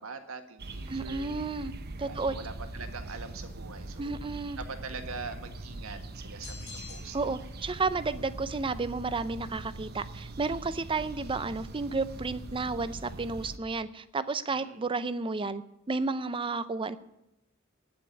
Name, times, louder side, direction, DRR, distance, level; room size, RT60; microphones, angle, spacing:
voice 1, 0.0-1.3 2.0-4.1 4.6-7.4 14.5-14.8, right 4 dB, 85° right, 7 dB, 1.5 m, -43 dB
sound 1, 0.6-13.6, right 2 dB, 50° right, 0.8 m, -42 dB
voice 2, 0.9-1.7 2.0-2.4 4.0-4.6 7.1-15.6 15.9-17.0, right 3 dB, 25° right, 14 dB, 0.5 m, -32 dB
sound 2, 6.4-7.4, left 6 dB, 75° left, 2.4 m, -46 dB
9.1 x 8.3 x 9.6 m, 0.89 s
head